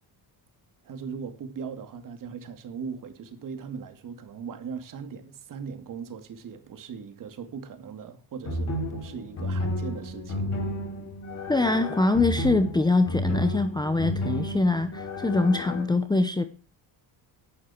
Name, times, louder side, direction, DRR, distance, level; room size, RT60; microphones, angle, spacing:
voice 1, 0.8-10.6, right 6 dB, 45° right, 2.7 m, -39 dB
sound 1, 8.4-15.8, left 1 dB, 35° left, 5.0 m, -31 dB
voice 2, 11.5-16.4, left 2 dB, 10° left, 0.8 m, -23 dB
17.5 x 11.5 x 4.5 m
cardioid pair, 180°, 45 cm